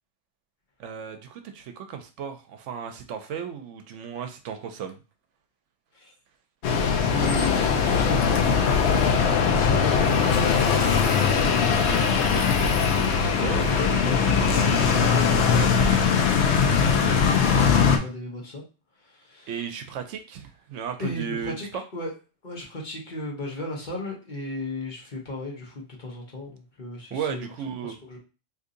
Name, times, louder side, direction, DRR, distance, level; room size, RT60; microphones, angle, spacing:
voice 1, 0.8-5.0 13.4-13.6 19.5-21.8 27.1-28.0, right 7 dB, 80° right, 6 dB, 0.9 m, -35 dB
sound 1, 6.6-18.0, left 6 dB, 70° left, 0.8 m, -21 dB
voice 2, 6.9-8.4 13.1-16.2 16.5-18.6 19.0-19.5 21.0-21.7 21.9-22.1 22.4-27.4 27.8-28.2, left 1 dB, 45° left, -2 dB, 0.9 m, -36 dB
2.8 x 2.7 x 3.7 m, 0.32 s
omnidirectional pair, 1.3 m